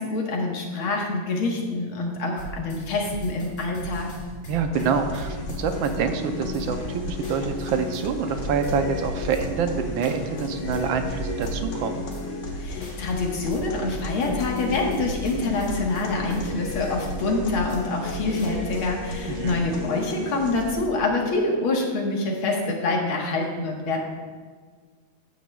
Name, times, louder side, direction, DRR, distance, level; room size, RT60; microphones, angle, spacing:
voice 1, 0.0-4.1 12.6-24.0, left 2 dB, 80° left, 0 dB, 2.2 m, -26 dB
sound 1, 2.4-18.9, right 3 dB, 30° left, 2.2 m, -38 dB
voice 2, 4.5-12.0 19.3-19.6, right 6 dB, 75° right, 6 dB, 1.4 m, -26 dB
sound 2, 4.7-20.7, left 3 dB, 60° left, 1.9 m, -33 dB
13.5 x 9.4 x 2.3 m, 1.5 s
omnidirectional pair, 2.3 m